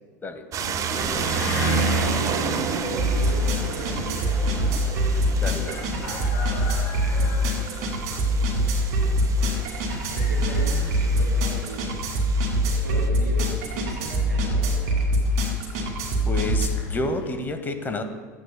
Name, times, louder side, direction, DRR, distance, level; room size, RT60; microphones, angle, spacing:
sound 1, 0.5-13.1, right 9 dB, 40° right, 0.5 m, -33 dB
sound 2, 0.6-17.3, right 1 dB, 60° left, 2.7 m, -34 dB
sound 3, 1.0-1.1 1.5-16.7, equal, 65° right, 2.3 m, -24 dB
voice 1, 1.8-4.3 10.1-12.0 12.6-15.1, right 2 dB, 85° right, -2 dB, 2.3 m, -37 dB
voice 2, 5.4-5.8 16.2-18.0, left 2 dB, 20° left, 7 dB, 1.0 m, -29 dB
13.0 x 9.1 x 2.2 m, 1.5 s
hypercardioid pair, 80°, 9 cm